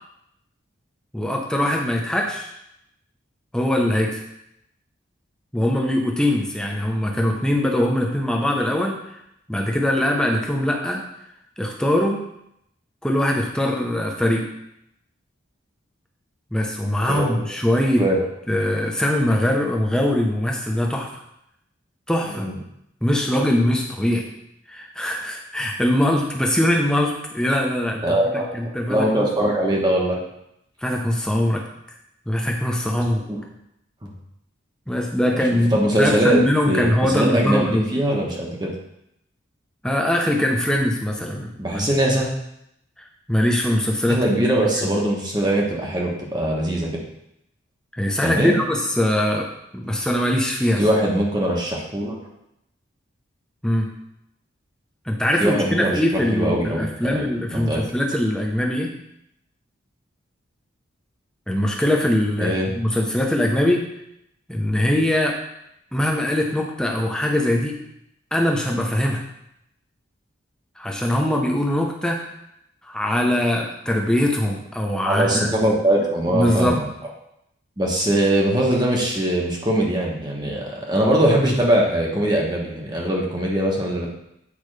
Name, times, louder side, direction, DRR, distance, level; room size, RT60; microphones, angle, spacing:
voice 1, 1.1-2.5 3.5-4.2 5.5-9.2 9.5-11.1 11.6-12.3 13.0-14.5 16.5-18.1 18.5-21.1 22.1-22.4 23.0-24.3 24.7-29.3 30.8-31.7 32.3-33.2 34.9-37.9 39.8-41.9 43.3-44.3 44.8-44.9 47.9-50.8 53.6-53.9 55.1-58.9 61.5-63.9 64.5-65.4 65.9-67.8 68.3-69.2 70.8-72.3 72.8-75.6 76.3-76.8, left 1 dB, 5° left, 0 dB, 0.8 m, -22 dB
voice 2, 17.1-17.4 18.0-18.2 22.4-22.5 28.0-30.2 33.3-33.4 34.0-34.1 35.3-36.4 36.7-38.7 41.6-42.3 44.1-46.9 48.2-48.6 50.8-52.1 55.4-57.2 57.5-57.8 62.4-62.7 75.1-76.8 77.8-84.1, right 1 dB, 20° right, -2 dB, 1.0 m, -21 dB
8.5 x 4.9 x 3.3 m, 0.79 s
head